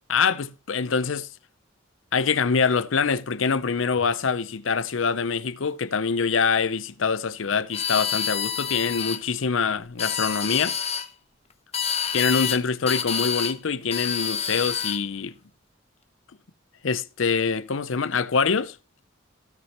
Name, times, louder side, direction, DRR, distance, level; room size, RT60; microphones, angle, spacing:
voice 1, 0.1-1.3 2.1-10.8 12.1-15.3 16.8-18.8, left 5 dB, 80° left, 0.6 m, -24 dB
sound 1, 7.7-9.2 9.8-11.1 11.7-12.6 12.9-13.6 13.9-15.0, left 8 dB, 35° left, 0.8 m, -28 dB
16.0 x 6.5 x 2.9 m
head